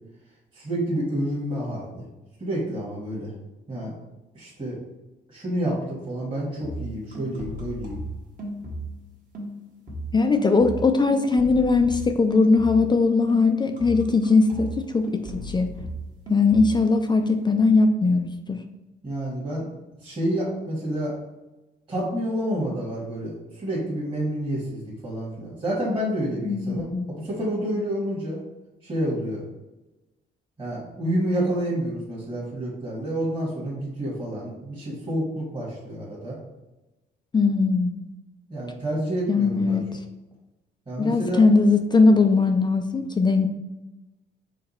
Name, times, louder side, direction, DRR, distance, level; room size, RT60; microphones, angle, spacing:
voice 1, 0.5-1.9 2.4-3.3 3.7-3.9 4.3-4.8 5.3-8.0 19.0-19.7 20.0-21.1 21.9-28.4 28.8-29.4 30.6-36.4 38.5-39.8 40.9-41.4, right 1 dB, 25° right, -8 dB, 1.4 m, -29 dB
sound 1, 6.6-9.1 9.3-13.0 13.3-16.9 17.2-17.5, right 1 dB, 40° right, 1.2 m, -36 dB
voice 2, 10.1-15.7 16.3-18.6 26.4-27.2 37.3-38.1 39.3-39.8 41.0-43.5, left 3 dB, 20° left, 7 dB, 0.3 m, -20 dB
4.9 x 2.2 x 4.0 m, 1.0 s
cardioid pair, 90°, 20 cm